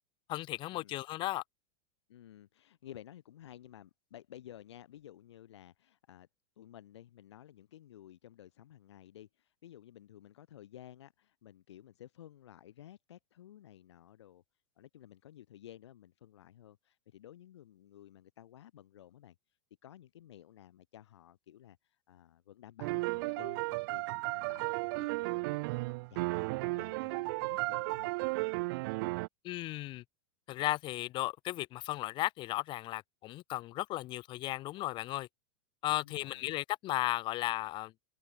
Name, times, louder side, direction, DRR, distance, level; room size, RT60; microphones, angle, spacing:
voice 1, 0.3-1.4 29.4-30.0 30.5-35.3 35.8-37.9, left 17 dB, 35° left, 3.9 m, -35 dB
voice 2, 2.1-6.3 6.6-14.4 14.8-19.3 19.8-28.1 35.9-36.6, left 12 dB, 90° left, 6.7 m, -54 dB
sound 1, 22.8-29.3, right 25 dB, 55° right, 1.4 m, -34 dB
open air
supercardioid pair, 150°, 14 cm